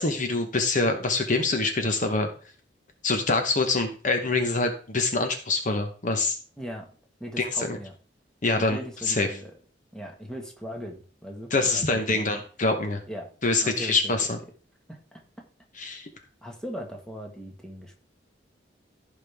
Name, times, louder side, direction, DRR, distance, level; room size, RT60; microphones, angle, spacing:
voice 1, 0.0-2.3 3.0-6.4 7.4-7.8 8.4-8.8 9.1-9.3 11.5-13.0 13.4-14.4 15.8-16.1, left 3 dB, 45° left, 6 dB, 1.1 m, -25 dB
voice 2, 6.6-6.9 7.2-7.9 8.6-9.5 9.9-12.4 13.1-13.3 13.6-14.1 14.9-15.2 16.4-18.0, equal, 5° left, 1 dB, 1.7 m, -39 dB
15.0 x 5.3 x 3.6 m, 0.39 s
head